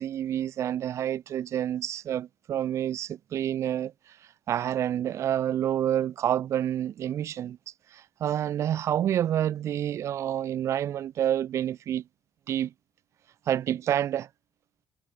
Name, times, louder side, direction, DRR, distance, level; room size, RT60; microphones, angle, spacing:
voice 1, 0.0-3.9 4.5-7.6 7.9-12.0 12.5-12.7 13.5-14.3, right 10 dB, 60° right, 0.4 m, -28 dB
cardioid pair, 115°, 6 cm